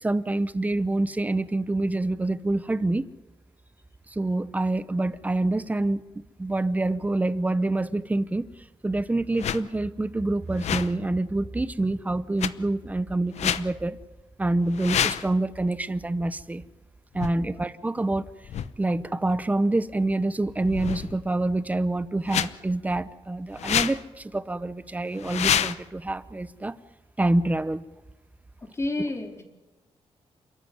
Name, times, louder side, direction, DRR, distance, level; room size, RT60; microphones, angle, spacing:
voice 1, 0.0-3.0 4.1-6.0 6.4-8.5 8.8-14.0 14.4-16.6 17.1-18.3 18.8-26.8 27.2-27.8, right 2 dB, 15° right, 15 dB, 0.8 m, -26 dB
sound 1, 9.3-9.6 10.5-10.9 12.4-12.5 13.3-13.6 14.7-15.3 17.1-17.3 18.4-18.7 20.6-21.3 22.3-22.5 23.5-24.0 25.1-25.7, left 9 dB, 85° left, 0.8 m, -27 dB
voice 2, 28.6-29.4, left 2 dB, 25° left, 2 dB, 3.7 m, -31 dB
28.5 x 13.5 x 9.4 m, 1.1 s
wide cardioid pair, 135°, 11 cm